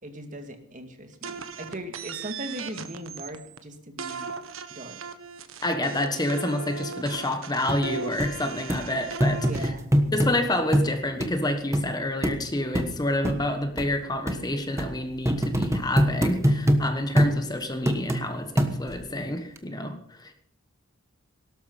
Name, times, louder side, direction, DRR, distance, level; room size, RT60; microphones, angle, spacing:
voice 1, 0.0-4.4 4.7-5.0 9.4-9.9, right 1 dB, 35° right, 5 dB, 2.2 m, -39 dB
sound 1, 1.2-3.6 4.0-9.7, right 5 dB, 75° right, 1.5 m, -38 dB
voice 2, 5.6-9.7 10.1-20.3, left 1 dB, 20° left, 7 dB, 1.3 m, -28 dB
sound 2, 7.7-7.8 8.2-8.3 8.7-8.8 9.2-10.3 10.7-10.9 11.2-11.3 11.7-11.8 12.2-12.4 12.7-12.9 13.2-13.4 13.8-13.9 14.3-14.4 14.8-14.9 15.2-16.8 17.2-17.3 17.9-18.2 18.6-19.0 19.6-19.7, equal, 15° right, 1.3 m, -23 dB
18.0 x 12.5 x 5.6 m, 0.66 s
head